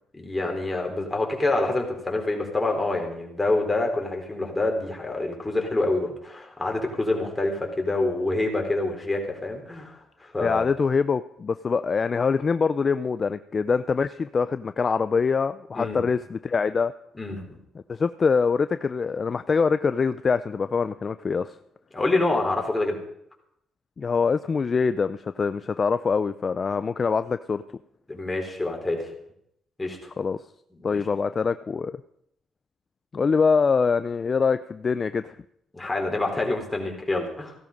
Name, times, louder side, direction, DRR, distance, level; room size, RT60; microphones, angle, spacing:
voice 1, 0.1-10.7 15.7-16.0 17.2-17.5 21.9-23.0 28.1-29.1 29.8-30.1 30.8-31.0 35.7-37.5, left 2 dB, 15° left, 1 dB, 4.4 m, -27 dB
voice 2, 10.4-16.9 17.9-21.6 24.0-27.6 30.2-30.4 30.8-31.9 33.1-35.4, left 5 dB, 40° left, 12 dB, 0.5 m, -24 dB
16.0 x 12.5 x 5.4 m, 0.75 s
cardioid pair, 80°, 0 cm